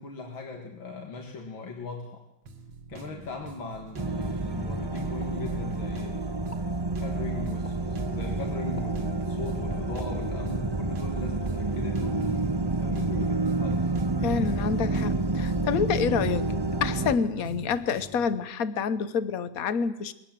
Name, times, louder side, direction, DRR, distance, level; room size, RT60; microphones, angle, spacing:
voice 1, 0.0-2.2 2.9-6.4 7.0-13.9, left 3 dB, 85° left, 2 dB, 2.6 m, -38 dB
sound 1, 2.5-18.4, right 4 dB, 90° right, 2.6 m, -44 dB
sound 2, 4.0-17.2, right 2 dB, 25° right, 0.5 m, -29 dB
Explosion, 5.2-6.1 6.4-6.8 7.7-8.0 8.8-9.1 10.0-10.7 11.2-11.4, equal, 20° left, 1.6 m, -49 dB
voice 2, 14.2-16.5 16.8-20.1, left 6 dB, 55° left, 14 dB, 1.3 m, -28 dB
22.0 x 18.0 x 7.5 m, 0.87 s
omnidirectional pair, 2.1 m